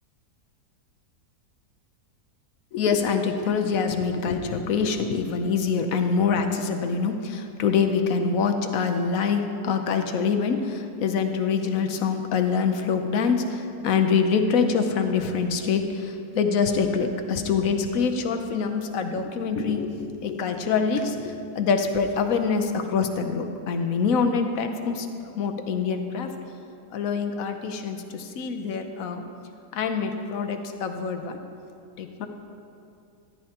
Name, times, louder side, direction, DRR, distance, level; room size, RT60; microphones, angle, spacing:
voice 1, 2.7-26.3 26.9-29.3 29.7-31.4 32.0-32.3, left 5 dB, 65° left, 6 dB, 1.1 m, -25 dB
14.0 x 11.0 x 2.9 m, 2.6 s
omnidirectional pair, 1.8 m